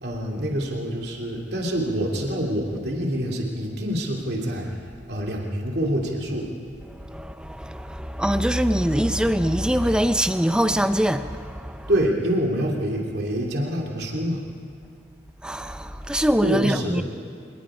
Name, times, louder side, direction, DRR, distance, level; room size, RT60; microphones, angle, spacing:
voice 1, 0.0-6.5 11.9-14.4 16.4-17.0, equal, 60° right, 2.8 m, -26 dB
voice 2, 6.9-12.1 15.4-17.0, equal, 5° right, 0.6 m, -23 dB
26.0 x 20.5 x 5.0 m
head